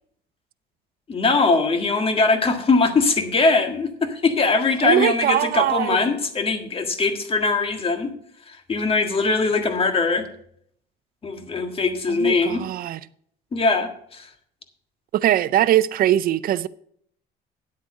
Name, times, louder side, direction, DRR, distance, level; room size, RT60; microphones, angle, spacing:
voice 1, 1.1-8.1 8.5-10.3 11.2-12.6 13.5-14.3, left 3 dB, 35° left, 1.7 m, -21 dB
voice 2, 4.8-6.0 12.1-13.0 15.1-16.7, right 12 dB, 60° right, 0.5 m, -21 dB
9.7 x 8.3 x 5.2 m
cardioid pair, 110°, 17 cm